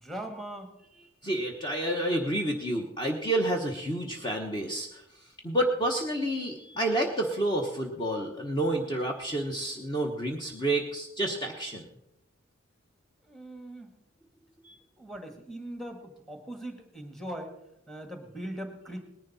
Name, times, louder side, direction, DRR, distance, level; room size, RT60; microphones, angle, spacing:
voice 1, 0.0-0.7 13.3-13.9 15.0-17.5 17.9-19.0, right 1 dB, ahead, 5 dB, 1.6 m, -40 dB
voice 2, 1.2-5.0 5.4-11.9 14.6-14.8, right 1 dB, 20° left, 1 dB, 1.1 m, -29 dB
19.0 x 10.5 x 4.2 m, 0.84 s
head